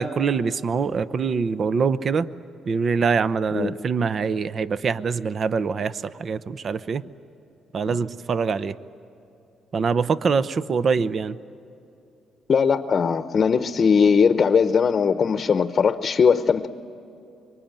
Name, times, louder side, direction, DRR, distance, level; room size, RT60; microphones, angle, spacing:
voice 1, 0.0-2.3 2.7-7.0 7.7-8.7 9.7-11.4, right 5 dB, 50° right, 0.7 m, -24 dB
voice 2, 12.5-16.7, left 6 dB, 45° left, 0.8 m, -19 dB
25.5 x 23.5 x 9.0 m
cardioid pair, 90°, 0 cm